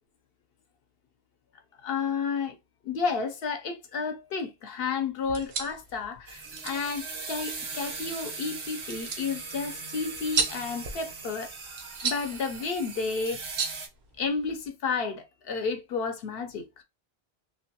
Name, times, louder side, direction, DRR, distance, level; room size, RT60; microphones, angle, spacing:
voice 1, 1.8-2.6 2.8-11.5 12.0-13.4 14.2-16.8, left 5 dB, 70° left, 0.8 m, -31 dB
sound 1, 5.2-14.7, right 6 dB, 85° right, 1.0 m, -36 dB
sound 2, 6.3-13.9, right 4 dB, 40° right, 0.5 m, -39 dB
3.1 x 2.2 x 2.7 m
omnidirectional pair, 1.0 m